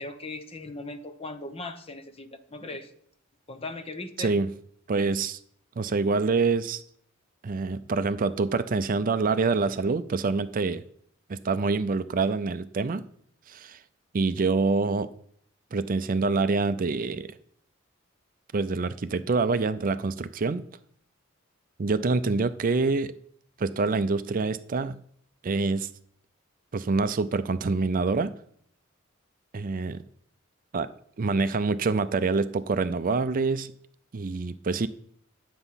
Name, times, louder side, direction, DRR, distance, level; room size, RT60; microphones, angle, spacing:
voice 1, 0.0-2.9 3.5-4.3, left 2 dB, 30° left, 8 dB, 1.0 m, -38 dB
voice 2, 4.9-5.4 5.8-6.8 7.4-10.8 11.3-13.0 13.5-13.8 14.1-15.1 15.7-17.4 18.5-20.6 21.8-23.1 23.6-25.0 25.4-25.9 26.7-28.3 29.5-30.0 30.7-30.9 31.2-33.7 34.1-34.9, right 4 dB, 45° right, 13 dB, 0.5 m, -26 dB
10.0 x 8.0 x 5.7 m, 0.63 s
head